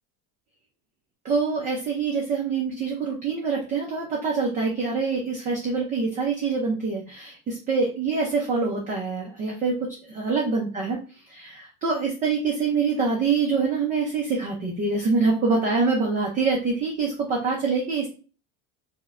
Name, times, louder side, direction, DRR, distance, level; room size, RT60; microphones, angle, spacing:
voice 1, 1.2-11.0 11.3-18.1, right 4 dB, 20° right, -2 dB, 0.4 m, -25 dB
4.8 x 2.1 x 2.4 m, 0.36 s
cardioid pair, 165°, 40 cm